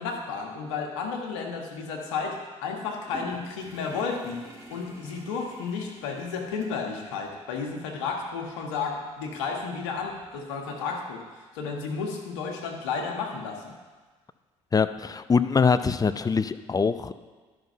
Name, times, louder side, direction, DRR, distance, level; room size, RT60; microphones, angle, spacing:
voice 1, 0.0-4.4 4.7-11.2 11.5-13.7, left 5 dB, 80° left, 2 dB, 1.4 m, -32 dB
sound 1, 3.1-11.1, right 1 dB, 20° right, 2.7 m, -50 dB
voice 2, 14.7-17.1, left 5 dB, 25° left, 12 dB, 0.6 m, -23 dB
12.0 x 5.6 x 5.5 m, 1.4 s
hypercardioid pair, 55°, 15 cm